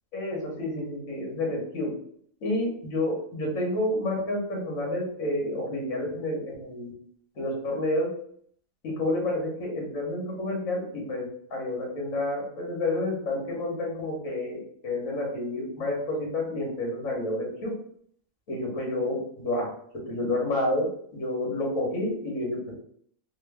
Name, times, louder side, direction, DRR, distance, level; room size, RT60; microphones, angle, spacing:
voice 1, 0.1-1.9 2.4-6.9 7.4-8.1 8.8-17.7 18.5-19.7 20.1-20.9 21.1-22.8, left 1 dB, 65° left, -1 dB, 1.5 m, -29 dB
3.6 x 2.1 x 3.3 m, 0.64 s
omnidirectional pair, 1.6 m